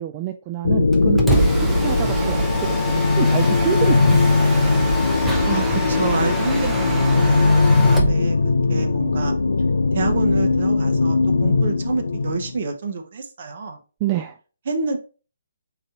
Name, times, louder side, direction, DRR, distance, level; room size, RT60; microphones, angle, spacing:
voice 1, 0.0-4.4 14.0-14.4, right 13 dB, 30° right, 5 dB, 0.3 m, -28 dB
sound 1, 0.6-12.6, left 3 dB, 80° left, 0.4 m, -19 dB
Mechanisms, 0.9-8.2, right 1 dB, 5° right, 0.7 m, -25 dB
voice 2, 5.4-9.4 9.9-13.8 14.7-15.0, right 4 dB, 50° right, 5 dB, 0.9 m, -28 dB
4.0 x 2.6 x 4.2 m, 0.37 s
hypercardioid pair, 150°, 0 cm